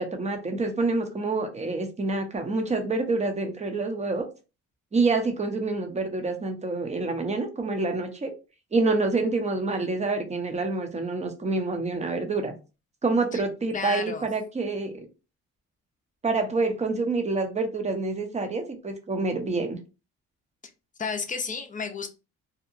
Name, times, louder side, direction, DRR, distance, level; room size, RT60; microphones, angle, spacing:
voice 1, 0.0-4.2 4.9-8.3 8.7-12.5 13.0-15.0 16.2-19.8, right 3 dB, 20° right, 5 dB, 0.7 m, -27 dB
voice 2, 13.7-14.3 21.0-22.1, left 5 dB, 25° left, 6 dB, 0.5 m, -32 dB
2.8 x 2.1 x 2.5 m, 0.30 s
cardioid pair, 90°, 30 cm